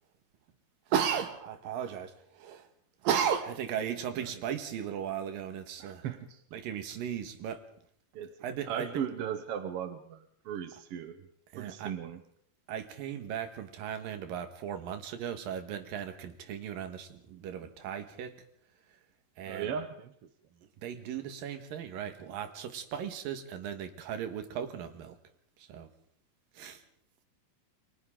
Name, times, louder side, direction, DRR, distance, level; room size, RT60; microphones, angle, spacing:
voice 1, 0.9-2.7 3.0-6.1 6.5-7.6 8.4-9.1 11.5-11.9 12.7-18.4 19.4-19.7 20.8-25.2 25.6-25.9 26.5-26.8, right 8 dB, 80° right, 8 dB, 3.3 m, -36 dB
voice 2, 5.8-6.4 8.1-8.4 8.7-11.3 11.6-12.2 19.5-20.1, right 8 dB, 60° right, 8 dB, 1.6 m, -37 dB
29.5 x 23.5 x 3.8 m, 0.64 s
omnidirectional pair, 4.0 m